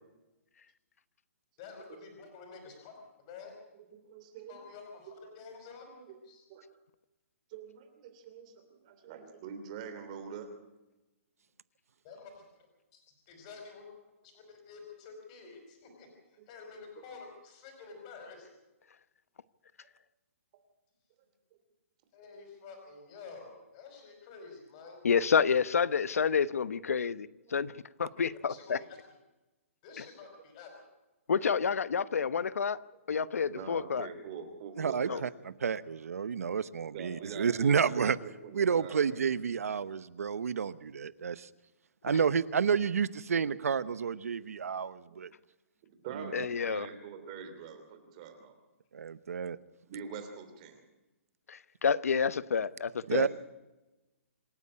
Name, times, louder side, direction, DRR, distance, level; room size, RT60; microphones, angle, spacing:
voice 1, 1.6-3.5 4.5-5.9 6.3-6.4 12.0-12.4 12.9-13.0 13.3-13.9 14.2-16.1 16.5-18.5 22.1-25.0 28.2-29.0 29.8-30.7, left 4 dB, 25° left, 3 dB, 5.2 m, -49 dB
voice 2, 3.9-4.6 5.0-5.1 5.9-6.2 6.5-6.7 7.5-10.5 25.4-25.5 26.8-27.1 27.5-27.7 33.5-35.3 36.9-39.4 44.4-44.5 45.1-45.3 45.8-48.5 49.9-50.8 53.1-53.3, right 6 dB, 25° right, 7 dB, 3.1 m, -45 dB
voice 3, 25.0-27.7 28.0-28.8 30.0-30.1 31.3-32.8 33.1-34.1 35.1-35.2 46.3-46.9 51.5-53.3, left 6 dB, 90° left, 17 dB, 1.0 m, -29 dB
voice 4, 34.8-35.3 35.6-38.2 38.5-41.5 42.0-45.3 46.2-46.3 48.9-49.6 53.1-53.3, right 6 dB, 85° right, 16 dB, 1.0 m, -30 dB
26.5 x 10.0 x 9.8 m, 1.0 s
hypercardioid pair, 175°, 8 cm